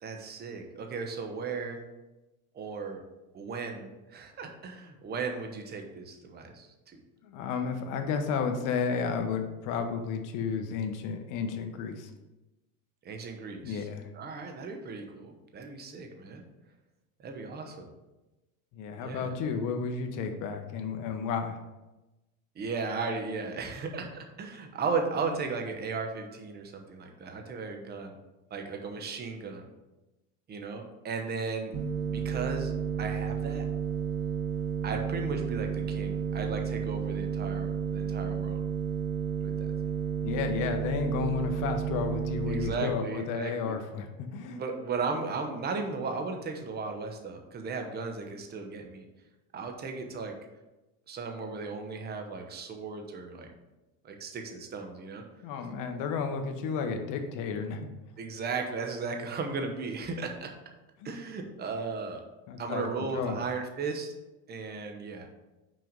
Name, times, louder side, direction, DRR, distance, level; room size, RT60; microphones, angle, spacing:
voice 1, 0.0-1.8 2.5-3.0 3.3-6.7 13.0-13.9 14.1-16.4 17.2-17.9 19.0-19.3 22.5-28.2 28.5-29.6 30.5-31.7 32.1-32.7 33.0-33.6 34.8-38.6 39.4-39.7 42.5-43.8 44.5-49.1 49.5-50.3 51.1-53.5 54.0-55.2 58.2-60.5 61.0-62.2 62.6-64.1 64.5-65.3, right 4 dB, 25° right, 4 dB, 1.0 m, -36 dB
voice 2, 7.2-12.1 13.6-14.1 18.7-21.6 40.2-44.6 55.4-57.9 61.0-61.1 62.5-63.4, left 6 dB, 50° left, 5 dB, 1.1 m, -32 dB
sound 1, 31.7-42.7, right 7 dB, 45° right, 1.5 m, -32 dB
6.1 x 4.5 x 5.2 m, 1.0 s
supercardioid pair, 135°, 41 cm